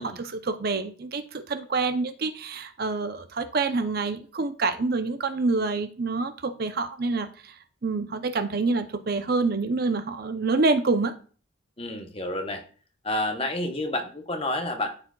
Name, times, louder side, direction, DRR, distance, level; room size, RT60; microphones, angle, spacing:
voice 1, 0.0-7.5 7.8-11.1, right 3 dB, 45° right, 0.6 m, -27 dB
voice 2, 11.8-12.6 13.0-14.9, left 1 dB, 25° left, 0.9 m, -29 dB
13.0 x 4.9 x 2.3 m
head